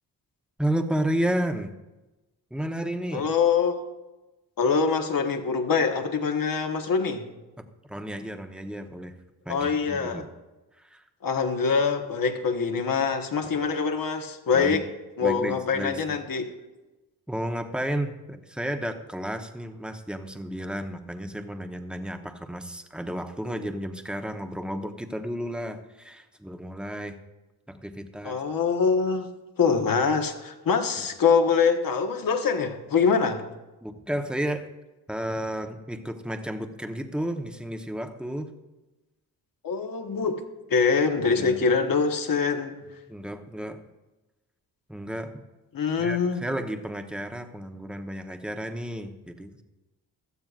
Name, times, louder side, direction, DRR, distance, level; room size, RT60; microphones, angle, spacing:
voice 1, 0.6-1.7 2.5-3.2 7.6-9.1 9.4-10.3 10.8-11.0 14.5-14.8 15.2-16.0 17.3-27.2 27.7-28.4 33.8-34.7 35.1-38.5 41.3-41.6 43.1-43.8 44.9-45.5 46.0-49.6, right 1 dB, ahead, 6 dB, 1.1 m, -32 dB
voice 2, 3.1-3.8 4.6-7.2 9.5-10.2 11.2-14.8 15.2-16.4 28.2-29.3 29.6-33.4 39.6-40.4 40.7-42.8 45.7-46.4, left 5 dB, 60° left, 5 dB, 1.4 m, -24 dB
16.5 x 12.0 x 2.5 m, 1.1 s
cardioid pair, 65°, 39 cm